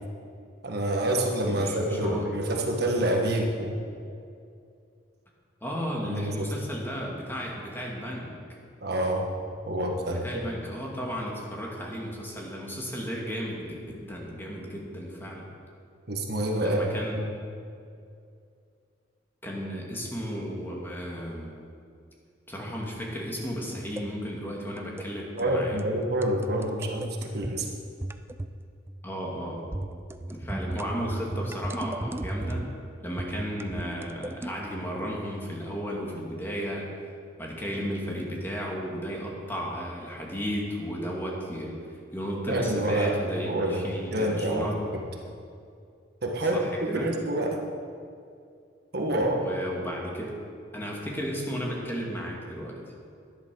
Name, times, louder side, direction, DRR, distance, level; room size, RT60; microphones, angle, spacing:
voice 1, 0.6-3.7 6.0-6.5 8.8-9.3 9.7-10.2 16.1-17.3 25.4-27.7 42.5-43.9 44.1-44.7 44.9-45.0 46.2-47.6 48.9-49.4, right 1 dB, 55° right, 1 dB, 1.5 m, -27 dB
voice 2, 1.5-2.3 5.6-8.4 10.1-15.5 16.6-17.2 19.4-21.5 22.5-25.8 29.0-29.6 30.3-32.6 33.0-36.9 37.4-41.8 42.1-44.8 46.5-47.2 49.1-50.3 50.7-52.8, equal, 10° left, -2 dB, 2.2 m, -34 dB
sound 1, 23.7-24.1 24.8-25.1 25.4-25.5 25.8-25.9 26.2-27.6 28.0-28.6 28.9-29.1 29.7-32.8 33.2-34.5, right 1 dB, 15° right, 0.4 m, -35 dB
11.5 x 10.5 x 6.3 m, 2.4 s
head